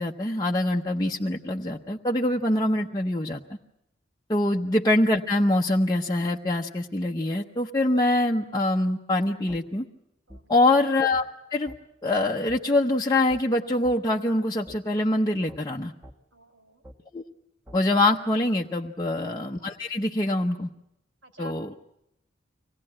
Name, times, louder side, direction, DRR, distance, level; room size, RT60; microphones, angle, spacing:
voice 1, 0.0-3.4 4.3-9.8 10.5-11.2 11.5-11.7 12.0-15.9 17.1-17.2 17.7-20.7 21.4-21.6, left 1 dB, 20° left, -1 dB, 0.8 m, -24 dB
sound 1, 9.5-9.6 10.3-10.4 11.1-11.3 11.7-11.8 12.5-12.6 13.3-13.4 13.8-14.0 14.7-14.8 15.5-15.6 16.0-16.2 16.8-17.0 17.7-17.8, equal, 10° right, 1.4 m, -46 dB
voice 2, 10.3-10.6 16.3-16.8 21.2-21.8, left 2 dB, 90° right, 6 dB, 3.6 m, -48 dB
25.0 x 18.0 x 8.7 m, 0.84 s
head